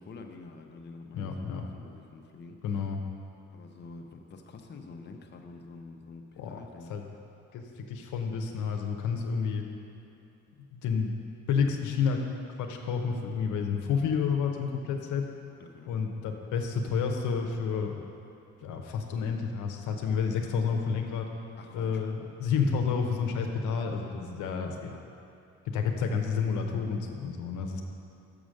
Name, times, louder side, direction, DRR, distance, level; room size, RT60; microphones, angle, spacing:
voice 1, 0.0-2.6 3.5-6.9 15.6-15.9 21.6-22.0, left 3 dB, 35° left, 3 dB, 0.7 m, -47 dB
voice 2, 1.1-1.7 2.6-3.0 6.4-6.6 6.9-7.0 7.5-9.6 10.7-11.1 11.5-12.2 12.6-15.2 15.9-17.9 18.6-21.3 21.7-24.9 25.7-27.8, left 6 dB, 85° left, 3 dB, 0.8 m, -30 dB
6.7 x 5.0 x 6.3 m, 2.9 s
cardioid pair, 90°, 30 cm